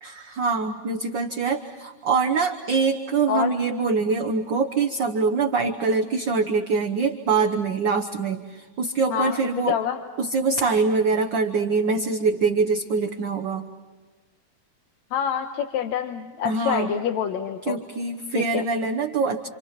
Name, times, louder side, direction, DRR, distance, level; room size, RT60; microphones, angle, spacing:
voice 1, 0.0-9.8 10.2-13.7 16.4-16.9 17.7-19.5, right 4 dB, 60° right, 3 dB, 1.2 m, -24 dB
voice 2, 9.7-10.0 15.1-17.8 18.4-18.6, left 9 dB, 70° left, 5 dB, 2.3 m, -26 dB
28.5 x 28.0 x 5.9 m, 1.3 s
omnidirectional pair, 3.4 m